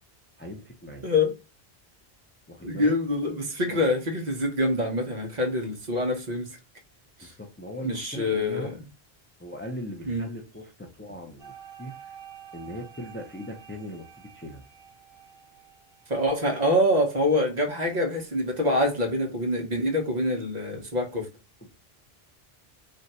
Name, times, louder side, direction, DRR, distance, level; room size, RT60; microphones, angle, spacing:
voice 1, 0.4-1.0 2.5-2.9 3.7-3.9 7.2-8.7 9.4-12.2 12.5-14.6, left 1 dB, 20° left, 0.3 m, -39 dB
voice 2, 1.0-1.3 2.6-6.5 7.2-7.3 7.8-8.8 10.1-10.3 16.1-21.3, left 1 dB, 45° right, 0.8 m, -25 dB
sound 1, 11.4-16.5, right 9 dB, 70° right, 1.0 m, -49 dB
2.5 x 2.2 x 4.0 m
omnidirectional pair, 1.0 m